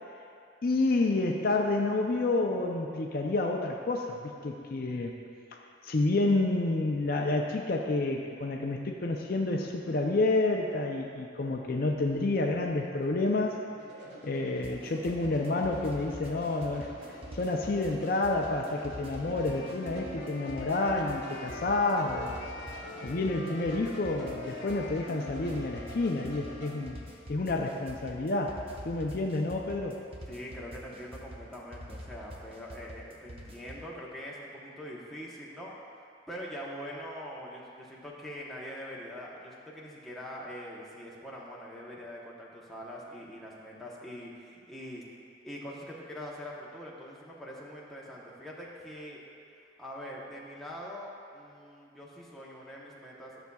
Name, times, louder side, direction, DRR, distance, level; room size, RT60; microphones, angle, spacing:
voice 1, 0.6-5.1 5.8-13.6 14.2-16.9 17.3-22.4 23.0-27.0 27.3-30.0, left 2 dB, 45° left, 1 dB, 0.5 m, -29 dB
sound 1, 11.5-26.8, equal, 65° right, 1.7 m, -48 dB
sound 2, 14.6-33.9, equal, 30° right, 0.7 m, -46 dB
Wind instrument woodwind instrument, 19.2-27.2, left 2 dB, 80° left, 0.7 m, -45 dB
voice 2, 30.3-35.7 36.0-45.0 45.4-49.2 49.8-53.4, equal, ahead, -6 dB, 0.9 m, -43 dB
13.0 x 6.8 x 2.3 m, 2.4 s
head